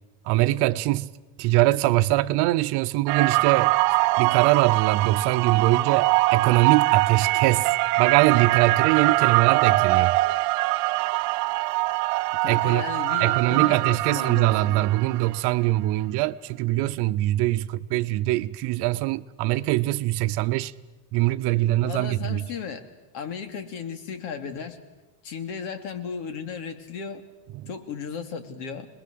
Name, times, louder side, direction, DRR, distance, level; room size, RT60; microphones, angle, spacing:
voice 1, 0.3-1.1 1.4-3.7 4.2-7.7 8.0-10.1 12.5-12.8 13.2-20.7 21.1-22.4 27.5-27.7, right 17 dB, 55° right, 0.9 m, -22 dB
sound 1, 3.1-15.4, right 20 dB, 80° right, 0.8 m, -23 dB
voice 2, 12.4-14.8 21.8-22.8 23.1-24.8 25.2-27.3 27.7-28.9, left 6 dB, 70° left, 3.0 m, -35 dB
25.5 x 21.0 x 7.7 m
supercardioid pair, 135°, 48 cm